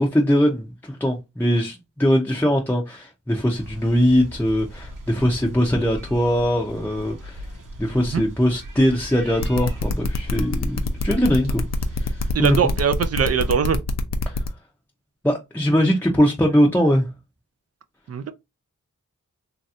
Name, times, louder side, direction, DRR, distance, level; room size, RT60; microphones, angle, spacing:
voice 1, 0.0-7.5 7.8-11.7 11.9-12.7 14.3-14.4 15.2-17.1, equal, 5° left, 0.6 m, -21 dB
sound 1, 3.5-13.6, equal, 80° right, 1.0 m, -39 dB
sound 2, 9.4-14.5, left 5 dB, 55° left, 0.6 m, -25 dB
voice 2, 12.3-13.8 18.1-18.3, right 7 dB, 50° right, 0.4 m, -21 dB
3.1 x 2.8 x 2.4 m
wide cardioid pair, 70°, 31 cm